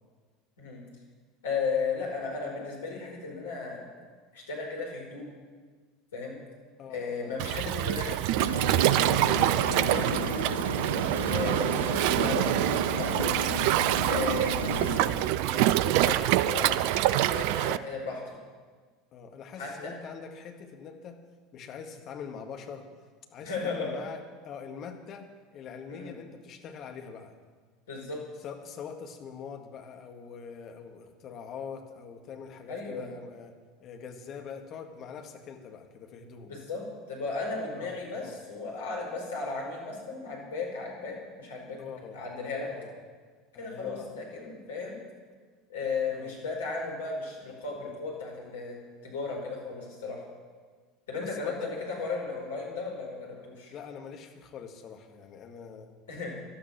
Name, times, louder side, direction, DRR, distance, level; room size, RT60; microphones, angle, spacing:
voice 1, 1.4-3.9 4.3-5.3 6.1-6.4 6.9-8.2 9.1-10.3 11.3-13.4 14.1-18.4 19.6-19.7 23.4-24.0 25.9-26.1 27.9-28.2 32.7-33.1 36.4-36.8 37.1-41.8 42.1-42.7 43.6-45.0 45.7-48.8 49.0-50.2 51.1-53.7 56.1-56.3, left 4 dB, 70° left, -1 dB, 5.1 m, -35 dB
voice 2, 6.8-7.4 9.3-9.7 11.4-11.8 14.6-14.8 19.1-21.2 21.5-22.9 23.3-27.3 28.4-33.5 33.8-36.5 37.7-38.4 41.8-42.2 42.7-42.9 43.5-44.1 46.1-46.4 51.1-51.7 53.7-55.9, left 6 dB, 40° left, 4 dB, 2.0 m, -43 dB
Waves surf, 7.4-17.8, right 14 dB, 55° right, 0.5 m, -26 dB
sound 1, 8.4-15.0, right 1 dB, 85° right, 1.3 m, -32 dB
17.5 x 12.0 x 6.2 m, 1.5 s
figure-of-eight pair, 75°, 0 cm